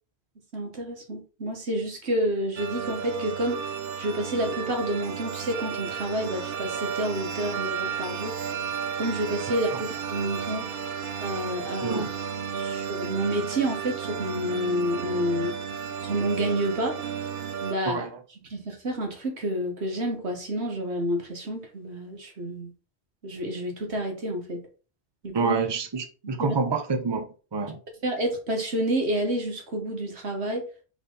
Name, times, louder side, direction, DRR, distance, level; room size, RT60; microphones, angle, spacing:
voice 1, 0.5-3.7 4.0-8.7 9.0-10.7 11.2-12.0 12.5-15.6 16.0-17.0 17.6-18.1 18.5-22.7 23.2-24.6 25.2-25.5 26.2-26.6 28.0-30.7, right 1 dB, 80° right, 1.8 m, -29 dB
sound 1, 2.6-17.7, right 7 dB, 65° right, 0.9 m, -33 dB
voice 2, 17.8-18.2 25.3-27.8, right 4 dB, 25° right, 0.7 m, -28 dB
5.8 x 4.0 x 4.1 m
omnidirectional pair, 1.1 m